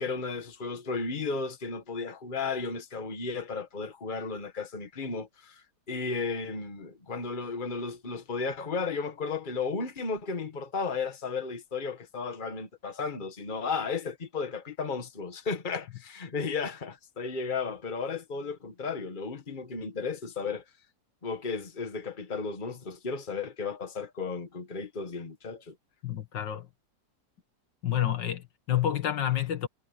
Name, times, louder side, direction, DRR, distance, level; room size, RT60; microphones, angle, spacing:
voice 1, 0.0-20.6 21.2-25.8, left 4 dB, 25° left, 1.7 m, -34 dB
voice 2, 26.0-26.7 27.8-29.7, left 11 dB, 75° left, 2.1 m, -29 dB
omnidirectional pair, 2.0 m